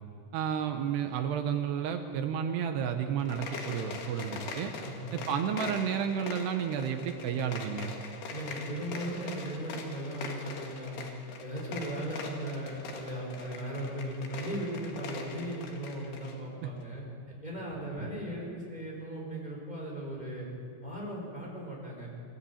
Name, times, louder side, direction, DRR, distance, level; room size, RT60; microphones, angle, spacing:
voice 1, 0.3-4.7 5.1-7.9 16.6-16.7, right 8 dB, 75° right, 6 dB, 2.8 m, -31 dB
sound 1, 3.1-16.4, left 4 dB, 65° left, 3.6 m, -42 dB
voice 2, 4.8-5.2 8.3-11.0 11.4-17.0 17.4-20.5 20.8-22.1, right 1 dB, 10° left, -3 dB, 4.6 m, -37 dB
23.0 x 14.0 x 8.6 m, 2.4 s
omnidirectional pair, 5.5 m